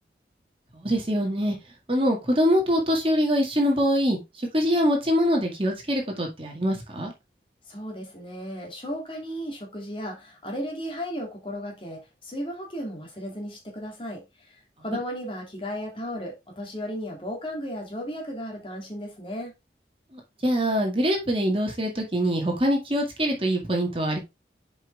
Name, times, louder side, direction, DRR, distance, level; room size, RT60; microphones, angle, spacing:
voice 1, 0.8-1.6 1.9-4.2 4.5-7.1 20.4-24.2, equal, 30° right, 1.9 m, -24 dB
voice 2, 7.7-19.5, equal, 30° left, 2.4 m, -35 dB
7.4 x 5.4 x 3.3 m
head